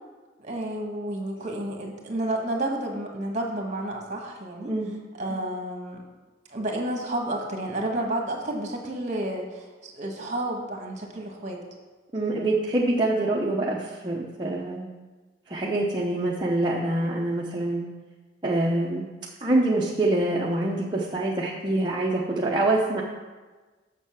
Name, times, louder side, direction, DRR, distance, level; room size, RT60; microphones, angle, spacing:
voice 1, 0.4-4.7 5.2-6.0 6.5-11.6, right 1 dB, 45° right, 1 dB, 1.6 m, -31 dB
voice 2, 12.1-14.9 15.5-17.9 18.4-19.0 19.4-23.0, right 2 dB, 25° right, -4 dB, 0.8 m, -25 dB
7.1 x 6.5 x 5.8 m, 1.3 s
head